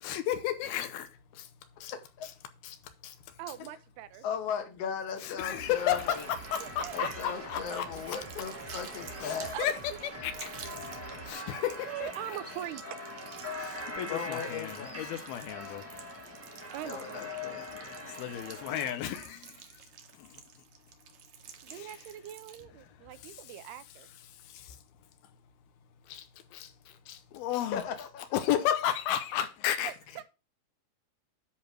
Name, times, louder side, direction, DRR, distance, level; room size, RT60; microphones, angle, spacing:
voice 1, 0.0-1.5 1.8-1.9 2.2-2.3 2.6-2.8 3.0-3.2 5.2-8.2 9.2-9.8 10.2-10.5 11.2-12.1 13.6-15.8 18.1-19.6 20.2-20.3 21.7-22.1 23.2-23.7 24.5-24.8 26.1-26.3 26.5-27.9 28.3-29.9, left 11 dB, 80° left, 2.6 m, -33 dB
voice 2, 3.4-4.2 6.6-6.9 9.0-9.1 9.5-9.7 11.9-13.0 16.7-17.2 21.6-24.1 29.8-30.2, right 12 dB, 80° right, 2.8 m, -41 dB
voice 3, 4.2-6.2 6.9-9.5 14.1-15.0 16.8-18.0 27.7-28.4, left 7 dB, 50° left, 2.1 m, -37 dB
sound 1, 5.5-11.3, right 4 dB, 40° right, 1.4 m, -48 dB
sound 2, 5.6-18.9, left 1 dB, 10° right, 0.7 m, -43 dB
sound 3, 5.8-22.6, right 8 dB, 60° right, 2.2 m, -51 dB
10.5 x 4.6 x 6.3 m
omnidirectional pair, 4.6 m